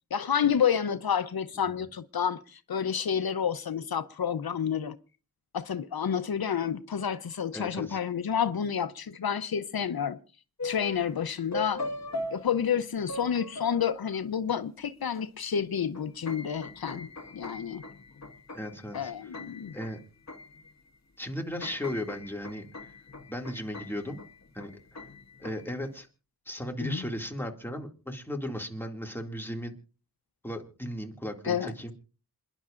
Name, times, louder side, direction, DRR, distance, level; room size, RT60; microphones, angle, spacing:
voice 1, 0.1-4.9 5.5-10.2 10.6-11.8 12.3-17.8 18.9-19.7 26.8-27.1 31.4-31.7, left 8 dB, 75° left, 0.7 m, -29 dB
voice 2, 1.6-1.9 7.5-8.0 18.5-19.1 19.7-20.0 21.2-22.9 23.3-24.2 24.5-24.7 25.4-26.1 26.5-29.7 30.4-31.9, equal, 5° left, 2.2 m, -36 dB
sound 1, 10.6-11.2 11.5-14.4 15.2-15.3 15.6-21.0 21.3-25.8, left 2 dB, 50° left, 1.6 m, -41 dB
27.5 x 10.5 x 2.5 m
wide cardioid pair, 65°, 36 cm